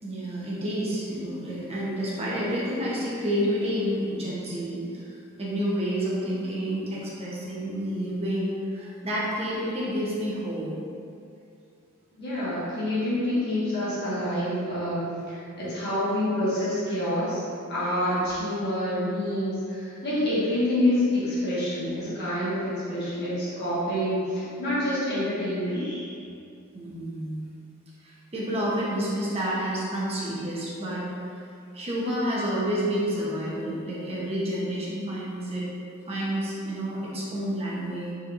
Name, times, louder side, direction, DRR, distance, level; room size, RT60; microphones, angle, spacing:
voice 1, 0.0-10.7 18.0-18.3 26.7-27.4 28.0-31.0 31.7-35.6 36.1-38.1, equal, 30° right, -6 dB, 0.9 m, -29 dB
voice 2, 12.2-17.4 17.7-26.1, left 1 dB, 50° left, -11 dB, 1.4 m, -27 dB
4.3 x 4.2 x 2.5 m, 2.5 s
head